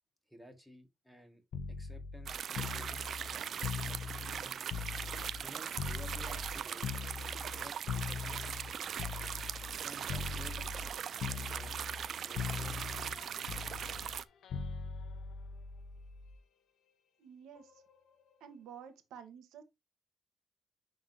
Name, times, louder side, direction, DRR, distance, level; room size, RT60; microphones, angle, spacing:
voice 1, 0.3-1.4 1.7-3.7 4.4-4.9 5.4-7.0 7.6-8.8 9.8-10.7 11.2-12.9, equal, ahead, 1.9 m, -55 dB
sound 1, 1.5-5.5 5.8-9.8 10.1-10.9 11.2-12.1 12.3-16.3 17.6-17.8, left 6 dB, 70° left, 0.8 m, -41 dB
sound 2, 2.3-14.2, right 8 dB, 60° right, 0.4 m, -40 dB
voice 2, 17.2-17.8 18.4-19.6, right 8 dB, 85° right, 1.3 m, -51 dB
10.0 x 3.8 x 2.8 m
cardioid pair, 90°, 0 cm